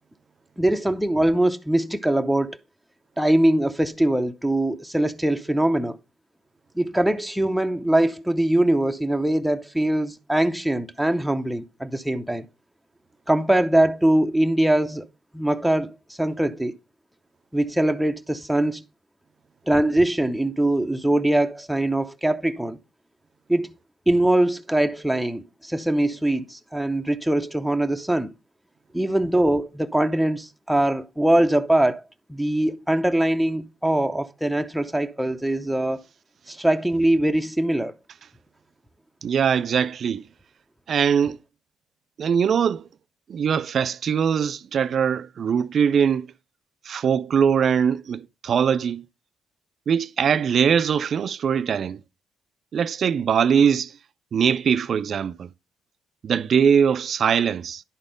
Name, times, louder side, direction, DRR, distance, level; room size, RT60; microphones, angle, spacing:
voice 1, 0.6-2.6 3.2-6.0 6.8-12.5 13.3-15.1 15.3-16.8 17.5-18.8 19.7-22.8 23.5-23.7 24.1-28.3 28.9-32.0 32.3-36.0 36.5-37.9, right 1 dB, ahead, 0.7 m, -22 dB
voice 2, 39.2-40.2 40.9-41.4 42.2-42.8 43.3-46.3 46.9-49.0 49.9-52.0 52.7-53.9 54.3-55.5 56.2-57.8, right 7 dB, 55° right, 0.4 m, -21 dB
10.5 x 4.1 x 5.0 m
cardioid pair, 90°, 0 cm